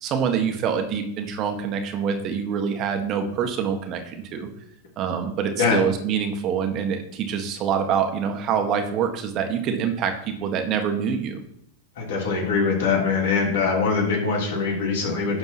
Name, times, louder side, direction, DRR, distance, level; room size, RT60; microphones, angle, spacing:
voice 1, 0.0-4.5 5.0-11.4, right 7 dB, 40° right, 5 dB, 1.7 m, -25 dB
voice 2, 12.0-15.4, left 4 dB, 65° left, -1 dB, 3.3 m, -23 dB
11.5 x 4.4 x 6.1 m, 0.70 s
hypercardioid pair, 100°, 0 cm